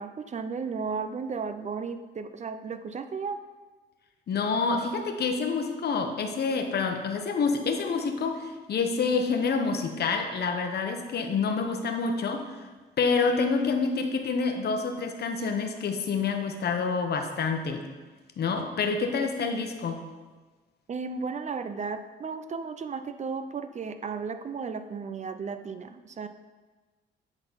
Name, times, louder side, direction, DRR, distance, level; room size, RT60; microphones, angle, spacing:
voice 1, 0.0-3.4 20.9-26.3, right 5 dB, 35° right, 9 dB, 0.5 m, -34 dB
voice 2, 4.3-12.7 13.0-17.8 18.4-20.0, left 4 dB, 55° left, 4 dB, 1.0 m, -27 dB
8.0 x 4.0 x 5.6 m, 1.3 s
cardioid pair, 90°, 20 cm